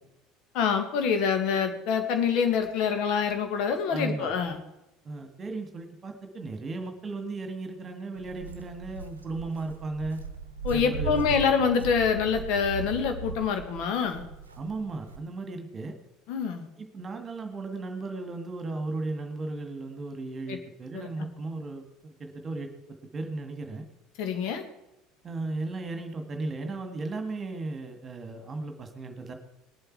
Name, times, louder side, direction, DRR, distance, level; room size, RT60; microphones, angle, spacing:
voice 1, 0.5-4.6 10.6-14.2 16.3-16.7 20.5-20.6 20.9-21.3 24.2-24.6, left 6 dB, 55° left, 6 dB, 1.8 m, -26 dB
voice 2, 3.9-4.3 5.0-10.2 10.7-11.7 14.6-15.9 16.8-22.7 23.1-23.9 25.2-29.3, right 3 dB, 25° right, 6 dB, 1.9 m, -35 dB
Walk footsteps, 8.1-15.2, right 5 dB, 80° right, 0.8 m, -39 dB
19.5 x 7.9 x 4.7 m, 0.92 s
figure-of-eight pair, 65°, 0 cm